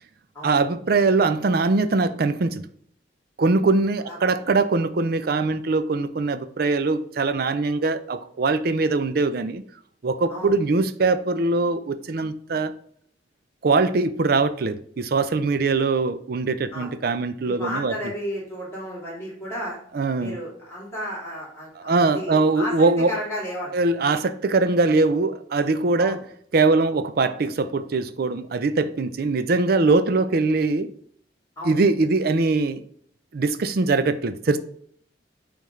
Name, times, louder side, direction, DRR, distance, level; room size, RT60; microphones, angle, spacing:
voice 1, 0.4-2.6 3.4-9.6 10.0-12.7 13.6-17.9 19.9-20.4 21.8-23.1 23.7-26.2 26.5-30.9 31.6-32.8 33.3-34.6, right 3 dB, 55° right, 0.5 m, -22 dB
voice 2, 4.0-4.4 10.3-10.5 16.7-16.9 17.4-19.8 20.2-23.7 26.0-26.2 31.6-31.8, equal, 15° left, 2.7 m, -33 dB
9.1 x 3.5 x 3.2 m
head